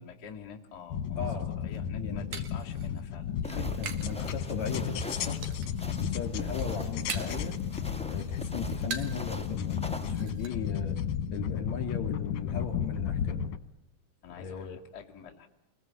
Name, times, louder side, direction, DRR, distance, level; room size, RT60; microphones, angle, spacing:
voice 1, 0.0-3.8 10.4-10.6 14.2-15.5, left 7 dB, 35° left, -1 dB, 2.5 m, -48 dB
sound 1, 0.9-13.6, left 8 dB, 80° left, 2.7 m, -34 dB
voice 2, 1.2-1.5 1.9-2.3 3.4-5.6 6.0-7.6 8.1-11.0 11.3-13.5 14.4-14.8, left 5 dB, 65° left, 7 dB, 4.5 m, -37 dB
sound 2, 1.6-4.2 4.5-5.0 5.4-5.9 6.3-7.5 7.9-9.3 9.6-9.7 10.0-10.5, right 6 dB, 70° right, 3.3 m, -42 dB
sound 3, 3.4-10.1, left 3 dB, 5° left, 0.7 m, -40 dB
27.0 x 21.5 x 9.6 m, 0.76 s
omnidirectional pair, 3.6 m